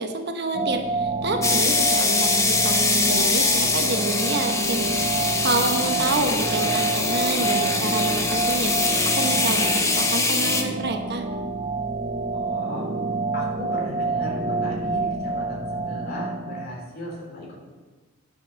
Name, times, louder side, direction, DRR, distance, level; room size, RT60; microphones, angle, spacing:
voice 1, 0.0-4.9 5.4-11.2, right 2 dB, 55° right, 5 dB, 1.0 m, -28 dB
sound 1, 0.5-16.7, right 3 dB, 30° right, 0.5 m, -28 dB
sound 2, 1.4-10.6, left 3 dB, 15° left, 1.0 m, -23 dB
sound 3, 4.7-10.8, right 1 dB, 75° left, 4.2 m, -37 dB
voice 2, 5.7-6.1 6.4-6.8 12.3-12.9 13.3-17.7, left 1 dB, 45° left, -2 dB, 3.3 m, -36 dB
9.8 x 7.5 x 6.3 m, 1.3 s
head